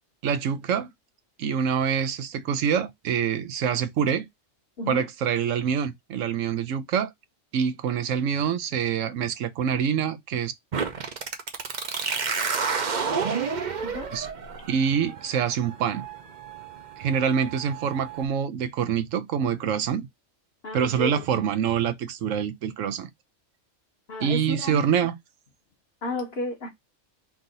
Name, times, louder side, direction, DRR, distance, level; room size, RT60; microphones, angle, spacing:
voice 1, 0.2-0.9 1.4-4.3 4.9-7.1 7.5-10.5 14.1-14.3 14.7-16.0 17.0-20.1 20.7-23.1 24.2-25.1, right 7 dB, 75° right, 1.0 m, -25 dB
sound 1, 10.7-18.2, right 5 dB, 45° right, 0.7 m, -31 dB
voice 2, 13.8-14.1 20.6-21.4 24.1-24.9 26.0-26.7, left 2 dB, 55° left, 1.2 m, -33 dB
3.7 x 2.7 x 3.8 m
omnidirectional pair, 1.3 m